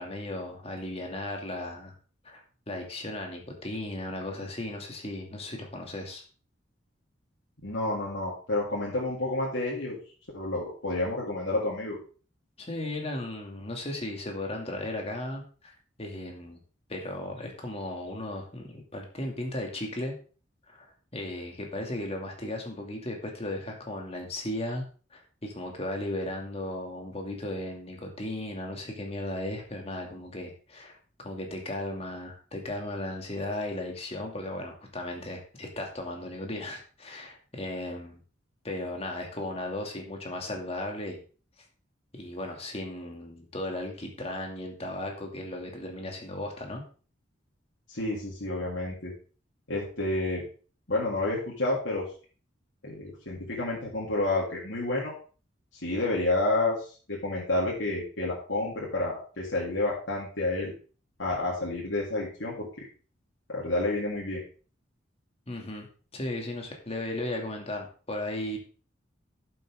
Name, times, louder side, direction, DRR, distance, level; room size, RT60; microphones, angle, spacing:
voice 1, 0.0-1.9 2.2-6.2 12.6-15.4 16.0-16.6 16.9-20.2 20.7-20.9 21.1-24.8 25.1-31.0 31.2-38.2 38.6-41.2 42.1-46.8 65.5-65.9 66.1-68.6, left 1 dB, 35° left, 2 dB, 2.4 m, -36 dB
voice 2, 7.6-10.0 10.3-12.0 47.9-49.1 49.7-50.4 50.9-52.1 52.8-55.1 55.8-56.8 57.1-60.7 61.2-62.7 63.5-64.4, left 2 dB, 80° left, -6 dB, 3.4 m, -29 dB
11.5 x 7.8 x 3.6 m, 0.38 s
head